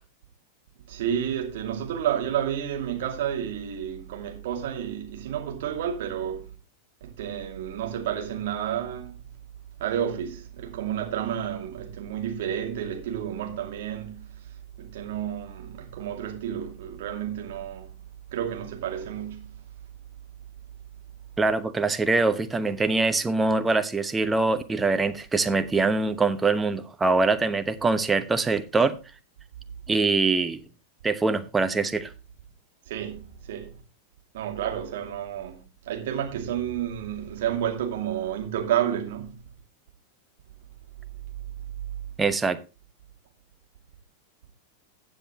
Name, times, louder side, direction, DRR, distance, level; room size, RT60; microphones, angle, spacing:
voice 1, 0.9-6.5 7.0-9.2 9.8-14.3 14.8-18.0 18.3-19.5 32.9-33.7 34.3-39.3, right 10 dB, 55° right, 2.5 m, -30 dB
voice 2, 21.4-29.0 29.9-30.6 31.0-32.1 42.2-42.6, right 3 dB, 15° right, 0.9 m, -23 dB
15.0 x 7.8 x 3.0 m
figure-of-eight pair, 90°, 0 cm